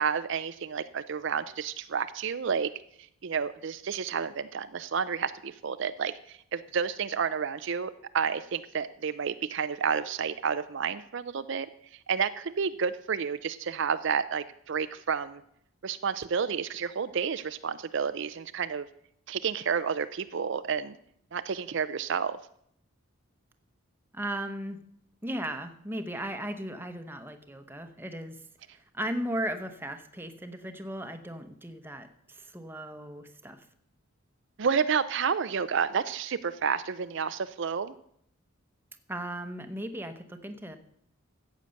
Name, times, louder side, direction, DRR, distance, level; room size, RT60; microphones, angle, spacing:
voice 1, 0.0-2.7 3.2-11.7 12.1-15.4 15.8-18.9 19.3-21.0 21.3-22.4 34.6-37.9, right 6 dB, 60° right, 12 dB, 0.5 m, -30 dB
voice 2, 24.1-24.8 25.2-28.4 28.7-33.6 39.1-40.8, right 1 dB, 10° right, 7 dB, 0.9 m, -36 dB
14.5 x 8.3 x 6.4 m, 0.70 s
head